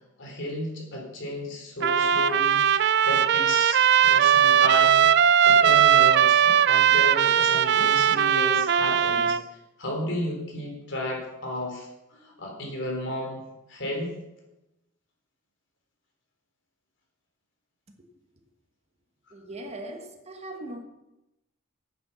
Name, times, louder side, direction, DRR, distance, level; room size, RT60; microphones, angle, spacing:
voice 1, 0.2-14.2, left 1 dB, 60° left, 0 dB, 3.6 m, -33 dB
Trumpet, 1.8-9.4, right 9 dB, 55° right, 0.4 m, -19 dB
voice 2, 19.3-20.8, right 1 dB, 30° right, 4 dB, 1.3 m, -39 dB
9.5 x 9.0 x 6.9 m, 0.93 s
head